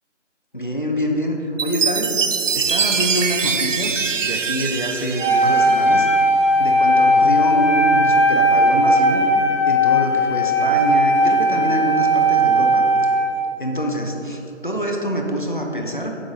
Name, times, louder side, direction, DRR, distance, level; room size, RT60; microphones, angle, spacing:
voice 1, 0.5-2.2 2.5-6.1 6.6-9.2 9.7-12.9 13.6-16.1, equal, 40° left, 1 dB, 0.7 m, -25 dB
Chime, 1.6-6.2, right 5 dB, 90° right, 0.6 m, -23 dB
Wind instrument woodwind instrument, 5.2-13.5, equal, 55° right, 1.2 m, -17 dB
7.5 x 6.5 x 4.1 m, 2.9 s
figure-of-eight pair, 175°, 37 cm